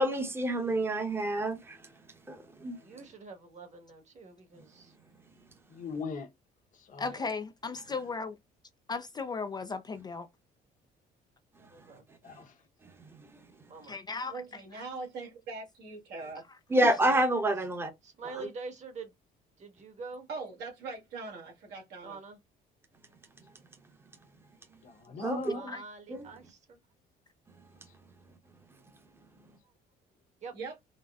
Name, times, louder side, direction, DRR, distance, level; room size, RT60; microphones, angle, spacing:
voice 1, 0.0-1.8 2.3-2.8 16.7-17.9 25.2-25.5 26.1-26.3, right 1 dB, 15° right, 0.8 m, -28 dB
voice 2, 2.8-4.9 7.0-7.3 11.7-12.0 13.7-14.0 17.0-17.2 18.0-19.1 19.6-20.3 22.0-22.4 25.2-26.8 30.4-30.5, right 4 dB, 45° right, 1.3 m, -46 dB
voice 3, 5.7-6.3 6.8-7.1 12.2-12.5 24.8-25.8, left 4 dB, 50° left, 0.9 m, -39 dB
voice 4, 7.0-8.4 8.9-10.3 13.8-14.8 16.7-16.9 25.7-25.8, left 4 dB, 25° left, 0.3 m, -36 dB
voice 5, 14.3-16.4 20.3-22.2 30.5-30.7, right 4 dB, 75° right, 1.7 m, -41 dB
4.0 x 2.1 x 2.3 m
cardioid pair, 110°, 17 cm